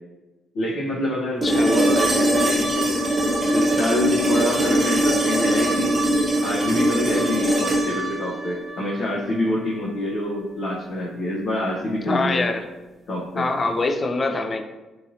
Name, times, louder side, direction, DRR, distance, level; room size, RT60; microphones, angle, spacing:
voice 1, 0.5-3.0 3.5-5.9 6.4-12.5 13.1-13.5, left 1 dB, 70° left, -6 dB, 0.6 m, -26 dB
voice 2, 1.4-1.8 12.1-12.6 13.4-14.6, left 3 dB, 35° left, 5 dB, 0.3 m, -24 dB
sound 1, 1.4-9.5 11.6-11.7, right 1 dB, 20° right, 0.8 m, -22 dB
3.0 x 2.5 x 2.7 m, 1.1 s
cardioid pair, 90°, 0 cm